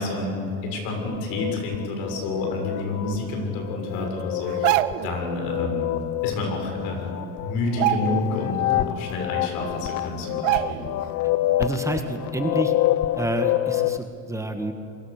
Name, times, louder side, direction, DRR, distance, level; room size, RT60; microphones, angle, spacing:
voice 1, 0.0-5.9 6.2-10.9, left 2 dB, 70° left, 2 dB, 6.8 m, -29 dB
sound 1, 1.0-14.0, left 14 dB, 50° left, 0.8 m, -27 dB
sound 2, 4.5-5.2 6.6-6.7 7.1-7.3 7.7-8.5 8.9-9.0 9.8-9.9 10.4-11.1 11.4-11.6, right 17 dB, 90° right, 0.9 m, -25 dB
voice 2, 11.6-12.7 13.1-14.7, right 2 dB, 10° right, 5 dB, 1.6 m, -28 dB
28.0 x 23.5 x 6.7 m, 2.7 s
supercardioid pair, 130°, 36 cm